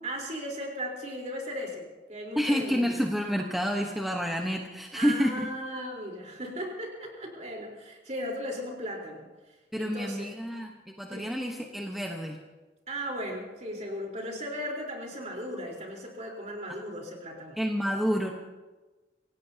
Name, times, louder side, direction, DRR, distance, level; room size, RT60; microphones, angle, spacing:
voice 1, 0.0-3.0 4.9-10.3 11.1-11.3 12.9-17.6, equal, 40° right, -1 dB, 4.2 m, -37 dB
voice 2, 2.4-5.5 9.7-12.4 17.6-18.3, equal, ahead, 1 dB, 1.1 m, -29 dB
26.5 x 17.0 x 2.9 m, 1.2 s
head